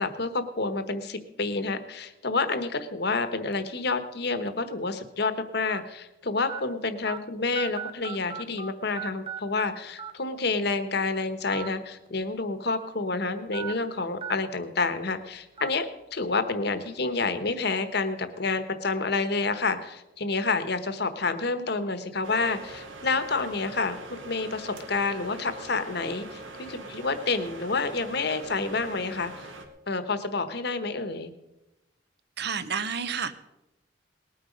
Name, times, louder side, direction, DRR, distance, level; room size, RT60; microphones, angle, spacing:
voice 1, 0.0-29.3 29.9-31.3, left 3 dB, 55° left, 10 dB, 1.2 m, -29 dB
sound 1, 3.5-3.7 4.5-4.6 5.7-5.8 6.5-6.6 7.1-7.2 7.5-8.7 9.0-9.7 10.0-10.1 11.4-11.7 12.1-12.2 13.5-13.7 14.2-14.3 14.8-14.9 15.6-15.7, right 8 dB, 30° right, 0.7 m, -36 dB
sound 2, 22.2-29.7, right 2 dB, 85° right, 1.7 m, -43 dB
voice 2, 32.4-33.3, right 6 dB, 55° right, 12 dB, 0.9 m, -30 dB
19.5 x 8.9 x 5.3 m, 0.96 s
head